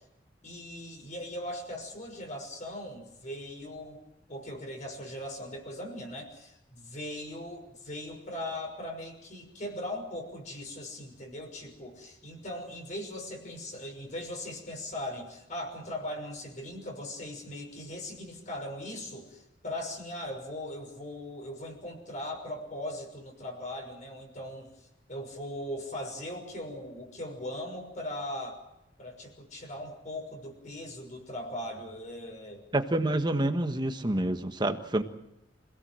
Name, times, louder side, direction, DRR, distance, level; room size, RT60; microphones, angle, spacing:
voice 1, 0.4-4.0 4.3-24.7 25.1-28.6 29.0-32.6, left 1 dB, 40° left, 2 dB, 6.1 m, -39 dB
voice 2, 32.7-35.0, right 1 dB, 25° right, 7 dB, 1.5 m, -28 dB
26.5 x 17.5 x 7.7 m, 0.86 s
head